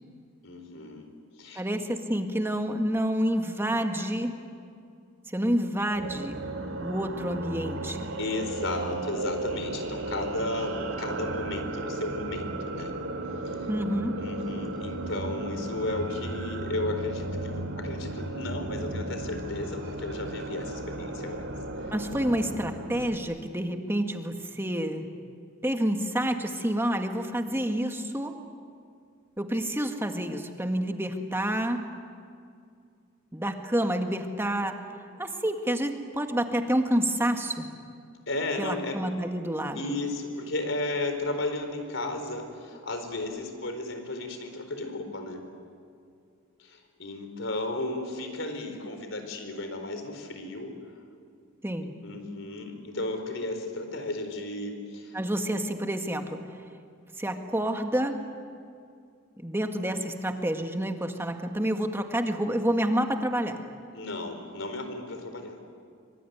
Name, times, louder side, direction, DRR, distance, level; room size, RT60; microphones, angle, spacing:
voice 1, 0.4-1.1 1.4-1.6 8.2-12.9 13.4-13.7 14.2-21.5 21.8-21.9 38.3-39.0 39.7-45.4 46.6-50.7 52.0-55.2 63.9-65.6, left 2 dB, 75° left, 6 dB, 4.5 m, -34 dB
voice 2, 1.6-4.3 5.3-6.5 6.8-8.1 13.7-14.2 21.9-25.1 25.6-28.4 29.4-31.8 33.3-34.8 35.2-37.7 38.6-39.8 51.6-52.0 55.1-56.4 57.2-58.2 59.4-63.6, right 1 dB, 10° right, 4 dB, 1.9 m, -28 dB
sound 1, 5.9-23.2, right 2 dB, 85° right, 2.7 m, -35 dB
25.0 x 25.0 x 9.4 m, 2.3 s
head